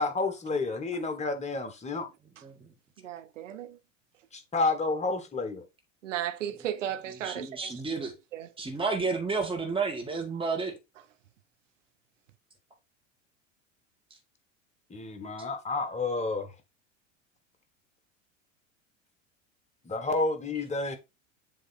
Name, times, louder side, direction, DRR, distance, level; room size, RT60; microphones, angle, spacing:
voice 1, 0.0-2.1 4.3-5.6 7.4-7.5 14.9-16.5 19.8-21.0, left 3 dB, 15° left, 1.4 m, -30 dB
voice 2, 3.0-3.8 6.0-7.8 8.3-8.5, right 11 dB, 75° right, 0.9 m, -35 dB
voice 3, 7.2-8.1 8.6-10.7, right 4 dB, 15° right, 1.9 m, -31 dB
7.3 x 3.2 x 4.1 m
figure-of-eight pair, 80°, 38 cm